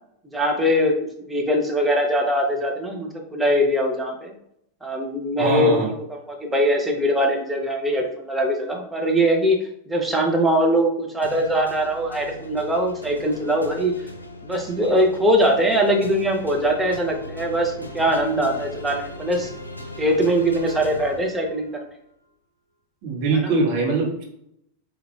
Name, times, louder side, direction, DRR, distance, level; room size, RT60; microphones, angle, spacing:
voice 1, 0.3-4.3 4.8-9.6 9.9-13.9 14.4-19.5 20.0-21.7 23.4-23.5, equal, 5° right, 0 dB, 0.9 m, -22 dB
voice 2, 5.4-5.9 23.0-24.2, right 3 dB, 45° right, -1 dB, 1.3 m, -22 dB
sound 1, 11.2-21.8, left 1 dB, 85° left, 0.5 m, -38 dB
4.9 x 3.2 x 2.4 m, 0.75 s
figure-of-eight pair, 90°, 0 cm